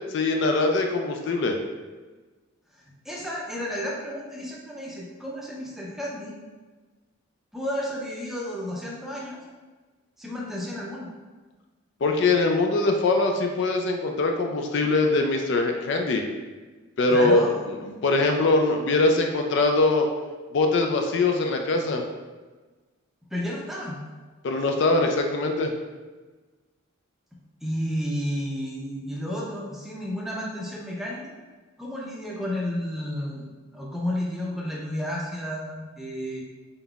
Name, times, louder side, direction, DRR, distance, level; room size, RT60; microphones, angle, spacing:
voice 1, 0.1-1.6 12.0-16.2 17.0-17.4 18.0-20.1 20.5-22.0 24.4-25.7, left 3 dB, 60° left, 3 dB, 0.3 m, -22 dB
voice 2, 2.7-6.3 7.5-9.4 10.2-11.1 17.1-17.6 23.3-24.0 27.6-31.4 31.8-36.4, equal, ahead, -4 dB, 0.5 m, -32 dB
3.9 x 3.8 x 2.3 m, 1.3 s
head